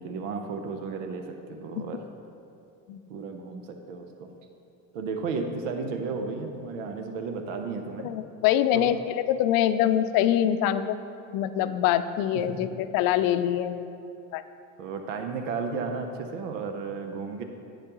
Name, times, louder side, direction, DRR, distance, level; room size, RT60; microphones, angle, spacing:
voice 1, 0.0-2.0 3.1-4.3 4.9-8.1 8.7-9.0 12.3-12.8 14.8-17.4, right 4 dB, 90° right, 5 dB, 0.8 m, -34 dB
voice 2, 8.0-11.0 11.3-13.9 14.3-14.4, left 11 dB, 65° left, 11 dB, 0.5 m, -24 dB
9.9 x 8.4 x 3.0 m, 2.6 s
supercardioid pair, 85°, 37 cm